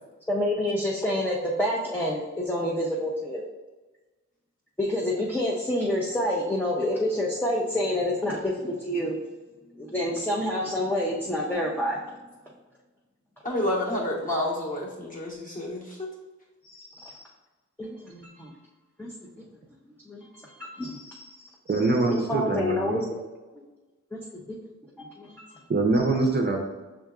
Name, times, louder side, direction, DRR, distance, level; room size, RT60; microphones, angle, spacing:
voice 1, 0.3-3.4 4.8-9.2 9.8-12.0 16.9-17.2 17.8-18.5 19.0-19.1 20.1-20.3 20.6-21.0 22.1-23.0 24.1-24.2 25.0-25.5, left 1 dB, 5° left, -4 dB, 0.7 m, -28 dB
voice 2, 13.4-16.1, left 1 dB, 30° left, -3 dB, 1.4 m, -29 dB
voice 3, 21.7-23.0 25.7-26.6, right 3 dB, 35° right, 2 dB, 0.6 m, -24 dB
6.1 x 3.7 x 2.4 m, 1.2 s
cardioid pair, 90°, 29 cm